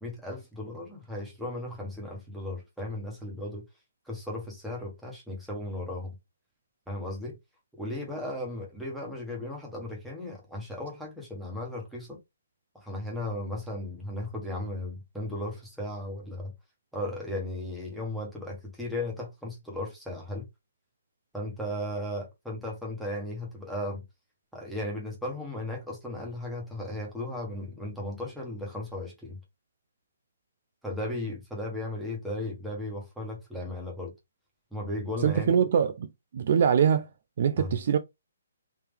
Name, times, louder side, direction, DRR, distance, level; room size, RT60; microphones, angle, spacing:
voice 1, 0.0-3.6 4.1-6.1 6.9-7.4 7.8-12.2 12.7-16.5 16.9-20.5 21.3-24.0 24.5-29.4 30.8-34.1 34.7-35.6 37.6-37.7, left 1 dB, ahead, 1.3 m, -36 dB
voice 2, 35.2-37.1 37.4-38.0, right 7 dB, 50° right, 0.4 m, -23 dB
3.5 x 2.8 x 3.5 m
hypercardioid pair, 155°, 0 cm